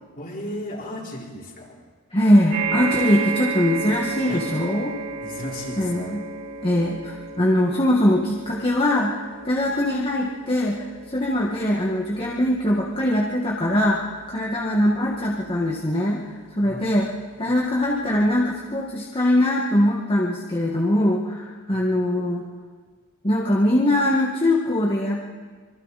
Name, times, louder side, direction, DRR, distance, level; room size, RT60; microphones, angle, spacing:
voice 1, 0.2-1.8 4.3-4.4 5.2-5.9 16.6-17.0 21.7-21.9, left 1 dB, 40° left, -2 dB, 4.3 m, -35 dB
voice 2, 2.1-4.9 5.8-6.2 6.6-16.2 16.6-17.1 17.4-22.4 23.2-25.2, left 1 dB, 25° left, -3 dB, 1.8 m, -22 dB
sound 1, 2.5-17.1 17.8-17.9 18.2-18.3, right 5 dB, 70° right, 4.9 m, -33 dB
26.0 x 24.0 x 4.2 m, 1.5 s
head